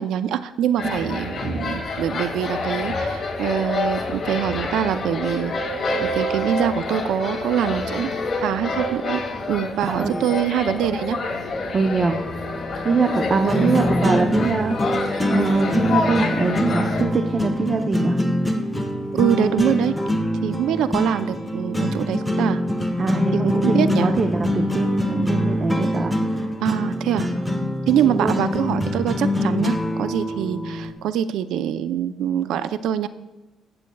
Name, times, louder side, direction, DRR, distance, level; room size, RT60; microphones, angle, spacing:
voice 1, 0.0-8.1 8.4-9.2 9.5-11.2 13.4-13.8 19.1-19.9 20.4-22.6 23.4-24.1 26.6-27.3 27.9-33.1, right 9 dB, 85° right, 13 dB, 0.5 m, -24 dB
sound 1, 0.8-17.0, left 2 dB, 45° left, 2.0 m, -27 dB
voice 2, 9.8-10.3 11.7-12.2 12.8-18.2 23.0-23.8 24.0-26.5 27.3-27.4 28.2-28.4, right 4 dB, 40° right, 6 dB, 0.7 m, -23 dB
sound 2, 12.1-30.9, left 1 dB, ahead, 1.1 m, -24 dB
14.5 x 7.6 x 2.3 m, 1.1 s
cardioid pair, 90°, 0 cm